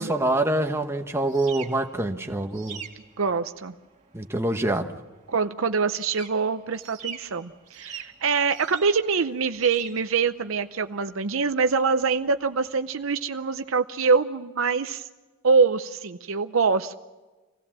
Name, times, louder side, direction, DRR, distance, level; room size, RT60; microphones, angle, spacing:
voice 1, 0.0-2.8 4.1-5.0, right 1 dB, 10° right, 5 dB, 1.1 m, -25 dB
sound 1, 0.6-13.8, right 7 dB, 35° right, 2.3 m, -45 dB
voice 2, 3.2-3.7 5.3-15.1 15.4-16.9, right 5 dB, 70° right, 9 dB, 0.7 m, -24 dB
25.5 x 17.0 x 7.5 m, 1.2 s
head